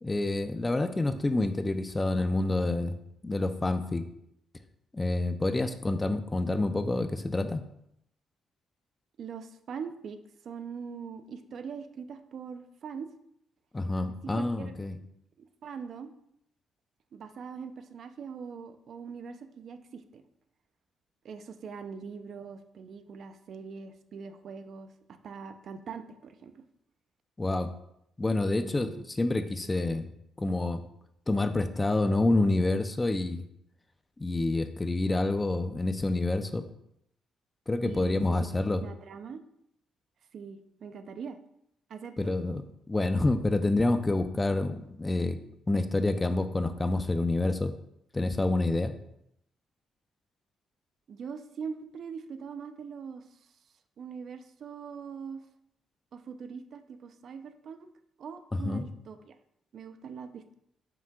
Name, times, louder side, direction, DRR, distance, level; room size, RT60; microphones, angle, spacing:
voice 1, 0.0-3.0 3.2-4.1 4.9-7.6 13.7-15.0 27.4-27.7 28.2-30.1 30.4-30.8 31.3-33.4 34.2-36.6 37.7-38.8 42.2-45.4 45.7-47.7 48.1-48.9 58.5-58.8, left 2 dB, 20° left, 9 dB, 0.6 m, -28 dB
voice 2, 9.2-10.2 10.4-13.1 14.1-14.7 15.4-16.1 17.1-20.2 21.2-26.6 28.4-29.0 37.8-38.5 38.8-39.4 40.3-41.4 41.9-42.3 51.1-53.4 54.0-55.4 56.1-57.9 58.2-59.4 59.7-60.5, right 6 dB, 60° right, 9 dB, 0.6 m, -42 dB
7.1 x 6.0 x 2.4 m, 0.76 s
cardioid pair, 90°, 0 cm